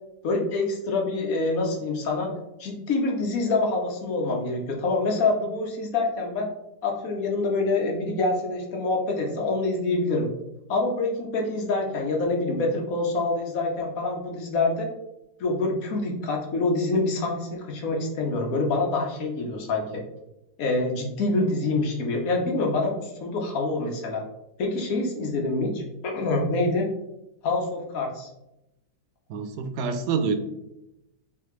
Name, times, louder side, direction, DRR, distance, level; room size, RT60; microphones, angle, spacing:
voice 1, 0.2-2.3 2.6-6.5 6.8-10.3 10.7-14.9 15.4-20.0 20.6-24.2 24.6-26.9 27.4-28.3, left 3 dB, 60° left, 1 dB, 1.0 m, -26 dB
voice 2, 29.3-30.4, right 5 dB, 75° right, 7 dB, 1.1 m, -26 dB
3.9 x 3.3 x 3.1 m, 0.90 s
omnidirectional pair, 2.0 m